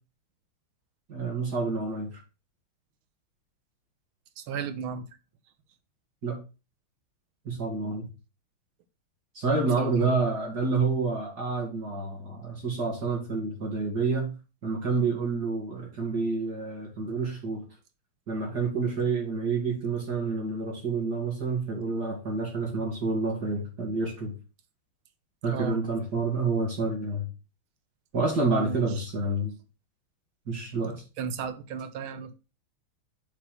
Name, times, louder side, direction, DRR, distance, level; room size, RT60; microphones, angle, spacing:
voice 1, 1.1-2.1 6.2-6.4 7.4-8.1 9.3-14.3 14.6-17.6 18.3-24.3 25.4-27.3 28.1-29.5 30.5-31.0, right 3 dB, 50° right, -1 dB, 2.6 m, -28 dB
voice 2, 4.4-5.1 9.8-10.3 25.5-25.8 28.6-28.8 31.2-32.3, right 6 dB, 85° right, 9 dB, 1.8 m, -33 dB
6.9 x 4.4 x 5.9 m, 0.31 s
omnidirectional pair, 2.3 m